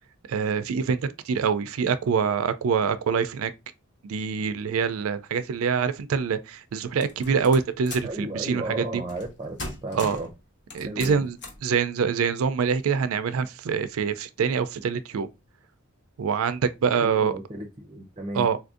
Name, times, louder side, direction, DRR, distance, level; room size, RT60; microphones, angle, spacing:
voice 1, 0.3-3.5 4.0-9.0 9.9-10.2 10.7-11.4 11.6-15.3 16.2-17.3 18.3-18.6, right 6 dB, 80° right, 0.4 m, -25 dB
sound 1, 7.0-8.2 9.1-9.3 9.6-10.3 10.7-11.7, left 2 dB, 60° left, 1.0 m, -38 dB
voice 2, 8.0-10.3 10.9-11.2 17.0-18.5, right 1 dB, 25° right, 0.5 m, -34 dB
3.8 x 2.6 x 2.4 m
head